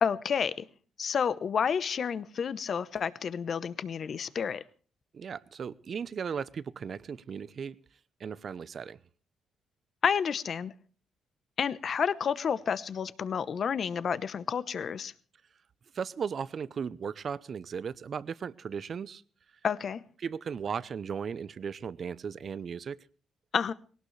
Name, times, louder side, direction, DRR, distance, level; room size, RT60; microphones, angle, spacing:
voice 1, 0.0-0.6 1.0-4.6 10.0-10.7 11.6-15.1 19.6-20.0 23.5-23.7, left 7 dB, 50° left, 0.9 m, -30 dB
voice 2, 5.1-7.8 8.2-9.0 15.9-19.2 20.2-23.0, right 6 dB, 50° right, 0.7 m, -36 dB
19.5 x 18.0 x 3.3 m
cardioid pair, 90°, 0 cm